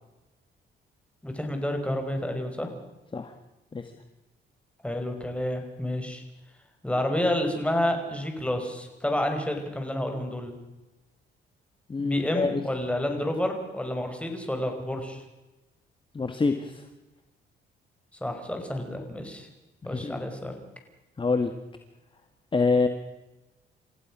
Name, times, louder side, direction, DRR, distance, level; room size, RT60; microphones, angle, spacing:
voice 1, 1.2-2.7 4.8-6.2 6.8-10.5 12.0-15.2 18.2-19.5 19.9-20.5, left 1 dB, 5° left, 4 dB, 5.3 m, -29 dB
voice 2, 11.9-12.6 16.1-16.8 19.9-20.3 21.2-21.5 22.5-22.9, left 4 dB, 25° left, 7 dB, 1.8 m, -26 dB
29.5 x 15.0 x 6.3 m, 1.0 s
cardioid pair, 90°, 20 cm